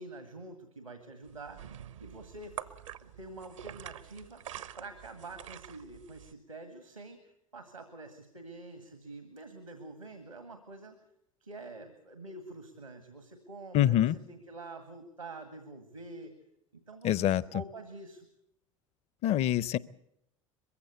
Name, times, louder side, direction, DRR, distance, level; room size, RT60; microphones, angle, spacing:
voice 1, 0.0-1.6 2.0-2.6 3.0-4.5 4.8-11.0 11.4-16.3 16.7-18.3, right 2 dB, 85° right, 8 dB, 1.9 m, -47 dB
sound 1, 1.2-6.3, right 11 dB, 70° right, 1.0 m, -46 dB
voice 2, 13.7-14.2 17.0-17.4 19.2-19.8, left 12 dB, 40° left, 22 dB, 0.7 m, -25 dB
22.5 x 15.5 x 8.2 m, 0.80 s
figure-of-eight pair, 70°, 17 cm